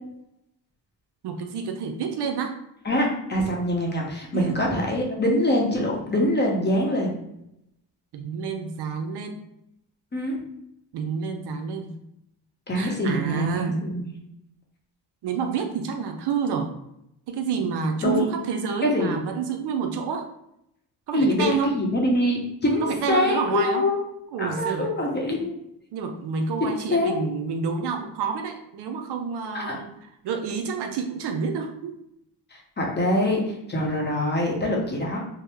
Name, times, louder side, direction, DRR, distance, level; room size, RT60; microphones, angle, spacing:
voice 1, 1.2-2.6 4.3-4.6 8.1-9.4 10.9-12.0 12.7-13.8 15.2-16.7 17.3-20.3 21.1-21.7 22.8-23.9 24.3-24.9 25.9-30.0 30.2-32.0, right 6 dB, 65° right, 5 dB, 0.5 m, -29 dB
voice 2, 2.8-7.1 10.1-10.4 12.7-14.1 18.0-18.3 18.8-19.2 21.1-24.0 24.4-25.5 26.9-27.1 29.5-29.8 32.5-35.2, left 1 dB, 25° left, -1 dB, 0.8 m, -24 dB
2.8 x 2.0 x 3.3 m, 0.80 s
cardioid pair, 80°, 45 cm